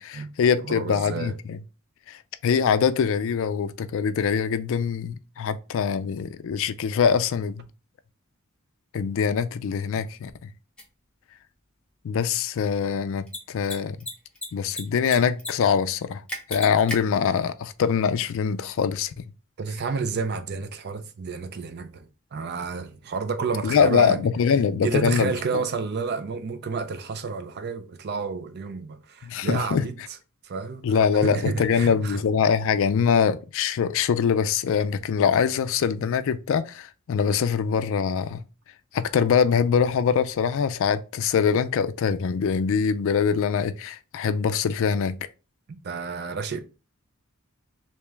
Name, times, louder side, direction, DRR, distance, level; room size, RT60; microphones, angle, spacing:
voice 1, 0.0-1.6 2.1-7.6 8.9-10.5 12.0-14.0 14.5-16.2 16.5-19.1 23.6-25.6 29.2-29.8 30.8-38.4 38.9-45.2, left 6 dB, 65° left, 0.3 m, -23 dB
voice 2, 0.6-1.3 19.6-24.2 24.8-30.0 30.4-31.0 31.2-32.2 45.8-46.6, right 4 dB, 50° right, 0.5 m, -30 dB
Mechanisms, 10.8-10.9 13.2-13.4 13.6-13.7 14.0-14.8 15.0-15.5 15.8-15.9 16.3-17.0, left 1 dB, 5° left, 0.9 m, -32 dB
3.4 x 2.9 x 3.1 m
head